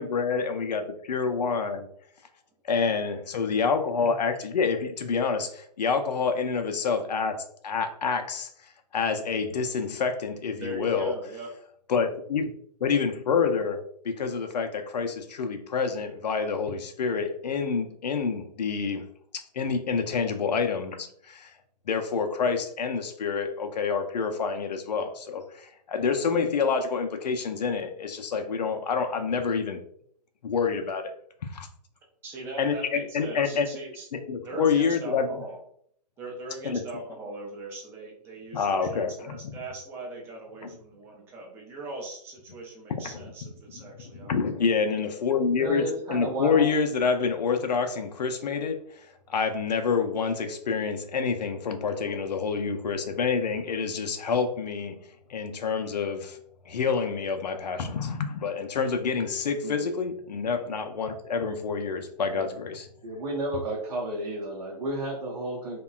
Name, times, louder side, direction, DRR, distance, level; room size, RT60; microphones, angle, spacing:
voice 1, 0.0-1.9 2.7-8.5 8.9-11.1 11.9-12.5 12.8-19.1 19.3-21.5 21.9-29.8 30.4-31.1 31.4-31.7 32.6-33.7 34.1-35.4 36.6-36.8 38.5-39.4 40.6-40.7 43.0-43.2 43.7-43.8 44.1-55.0 55.3-56.4 56.7-62.9, left 5 dB, 75° left, 7 dB, 0.5 m, -27 dB
voice 2, 10.5-11.5 32.2-34.1 34.4-35.6 36.2-44.6, right 2 dB, 10° right, -1 dB, 0.4 m, -40 dB
voice 3, 45.6-46.7 59.6-59.9 62.3-62.5 63.0-65.8, right 1 dB, 85° right, -4 dB, 0.8 m, -32 dB
2.9 x 2.2 x 2.3 m, 0.66 s
hypercardioid pair, 140°, 21 cm